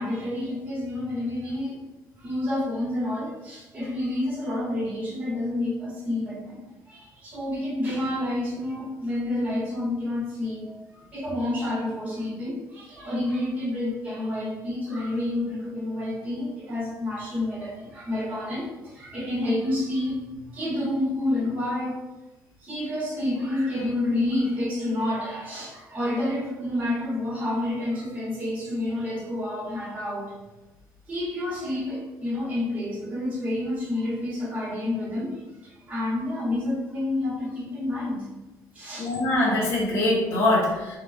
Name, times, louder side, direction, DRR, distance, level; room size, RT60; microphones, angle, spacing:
voice 1, 0.0-1.8 2.2-22.0 22.6-30.3 31.1-38.3 38.7-39.1, left 1 dB, 20° right, -8 dB, 1.5 m, -29 dB
voice 2, 39.0-41.0, left 1 dB, 40° left, -6 dB, 1.2 m, -23 dB
3.7 x 3.1 x 4.5 m, 1.1 s
cardioid pair, 180°, 6 cm